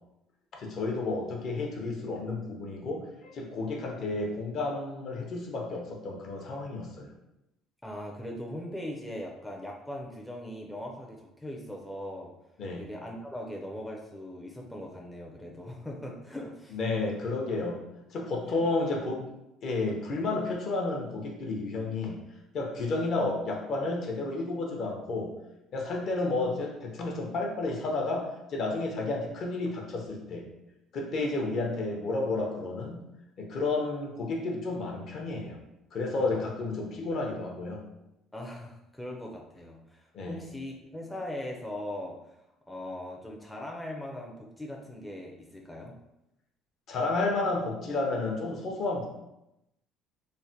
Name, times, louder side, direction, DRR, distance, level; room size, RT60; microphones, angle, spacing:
voice 1, 0.6-7.1 12.6-12.8 16.7-17.8 18.1-19.2 19.6-22.2 22.5-25.3 25.7-30.5 30.9-33.0 33.4-35.6 35.9-37.8 40.1-40.4 46.9-49.1, left 3 dB, 55° left, 1 dB, 0.6 m, -31 dB
voice 2, 7.8-12.3 12.8-16.8 18.5-18.6 36.2-36.5 38.3-42.2 42.7-45.9, left 1 dB, 5° left, -1 dB, 0.4 m, -40 dB
3.2 x 2.1 x 2.7 m, 0.87 s
cardioid pair, 115°, 0 cm